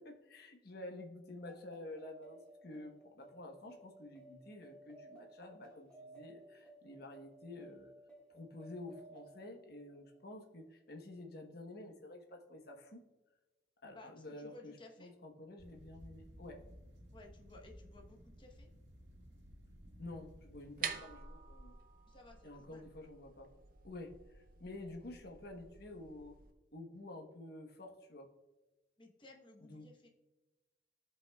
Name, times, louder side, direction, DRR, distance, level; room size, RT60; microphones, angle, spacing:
voice 1, 0.0-7.9 8.3-13.0 13.8-14.7 15.0-16.6 20.0-21.8 22.4-23.5 23.8-26.3 26.7-28.3 29.6-29.9, left 2 dB, 55° left, 3 dB, 1.1 m, -50 dB
sound 1, 1.4-10.4, right 2 dB, 5° left, 1.7 m, -58 dB
voice 2, 13.9-15.1 17.1-18.7 22.1-22.9 29.0-30.1, left 2 dB, 25° left, 0 dB, 1.1 m, -57 dB
sound 2, 15.6-21.0, equal, 75° right, 2.0 m, -57 dB
sound 3, 20.5-26.5, right 7 dB, 50° right, 0.6 m, -48 dB
14.5 x 5.5 x 2.3 m, 1.1 s
head